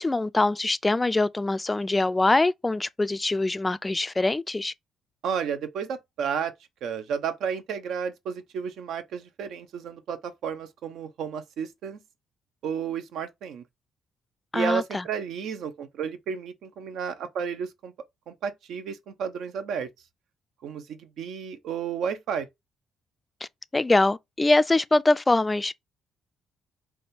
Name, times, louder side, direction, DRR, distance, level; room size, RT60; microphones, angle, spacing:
voice 1, 0.0-4.7 14.5-15.0 23.7-25.7, left 2 dB, 20° left, 0.3 m, -23 dB
voice 2, 5.2-6.5 6.8-12.0 12.6-13.6 14.5-17.9 18.3-19.9 20.6-22.5, right 7 dB, 80° right, 0.6 m, -32 dB
3.4 x 2.3 x 4.1 m
cardioid pair, 90°, 0 cm